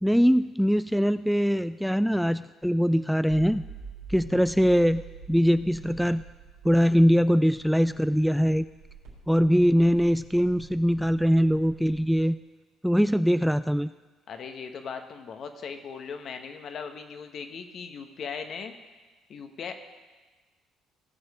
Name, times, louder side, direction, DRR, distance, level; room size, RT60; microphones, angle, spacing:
voice 1, 0.0-3.6 4.1-5.0 5.3-6.2 6.6-8.7 9.3-12.4 12.8-13.9, equal, ahead, 13 dB, 0.3 m, -22 dB
sound 1, 3.3-12.2, right 5 dB, 85° right, 4.0 m, -47 dB
voice 2, 14.3-18.7 19.3-19.8, left 6 dB, 60° left, 6 dB, 1.3 m, -38 dB
18.5 x 6.4 x 5.0 m, 1.3 s
supercardioid pair, 65°, 0 cm